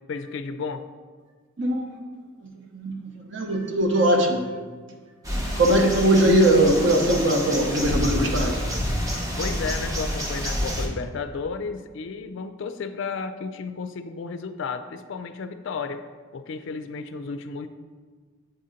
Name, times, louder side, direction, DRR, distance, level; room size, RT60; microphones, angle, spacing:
voice 1, 0.1-0.8 9.4-16.0 16.3-17.7, left 5 dB, 60° left, 9 dB, 0.3 m, -33 dB
voice 2, 1.6-1.9 2.4-4.5 5.5-8.6, right 1 dB, 55° right, 2 dB, 0.8 m, -21 dB
sound 1, 5.2-10.9, equal, 15° right, 0.6 m, -28 dB
7.7 x 2.8 x 5.0 m, 1.5 s
head